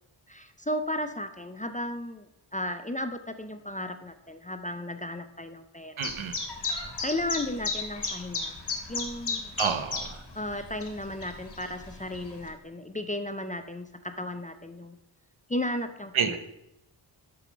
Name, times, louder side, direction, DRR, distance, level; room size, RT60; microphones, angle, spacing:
voice 1, 0.3-6.1 6.7-8.6 8.9-9.5 10.3-15.0 15.5-16.4, left 1 dB, 20° left, 8 dB, 0.4 m, -34 dB
Chirp tweet, 6.0-12.5, left 4 dB, 55° left, 1.5 m, -35 dB
voice 2, 6.0-6.4 9.6-10.2 16.1-16.4, right 7 dB, 80° right, 9 dB, 0.9 m, -29 dB
6.1 x 6.0 x 5.0 m, 0.88 s
wide cardioid pair, 110°, 48 cm